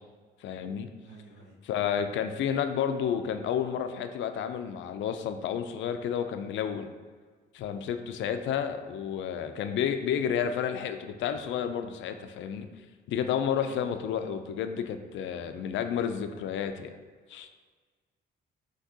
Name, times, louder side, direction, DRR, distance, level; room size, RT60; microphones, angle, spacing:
voice 1, 0.4-0.9 1.7-6.9 7.5-12.7 13.1-17.0 17.3-17.5, left 8 dB, 75° left, 8 dB, 0.4 m, -31 dB
voice 2, 1.0-1.5 13.6-13.9, right 4 dB, 60° right, -2 dB, 0.8 m, -51 dB
5.9 x 2.9 x 2.8 m, 1.5 s
cardioid pair, 90°, 20 cm